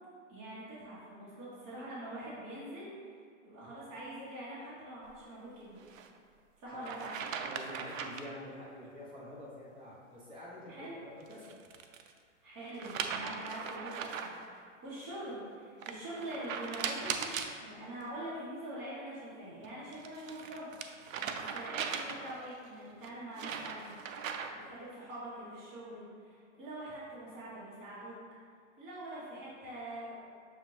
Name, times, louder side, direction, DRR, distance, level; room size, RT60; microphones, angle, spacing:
voice 1, 0.3-2.9 3.4-5.8 6.6-7.1 10.7-10.9 12.4-20.7 21.3-23.9 24.5-28.1 28.8-30.1, right 1 dB, 30° right, -9 dB, 1.5 m, -44 dB
sound 1, 5.8-6.1 6.8-8.3 11.2-12.1 12.8-14.4 15.8-17.5 19.6-22.4 23.0-24.7, right 6 dB, 80° right, 0.5 m, -39 dB
voice 2, 7.4-11.6, left 1 dB, 15° right, -7 dB, 1.0 m, -47 dB
6.3 x 2.5 x 3.3 m, 2.1 s
hypercardioid pair, 140°, 39 cm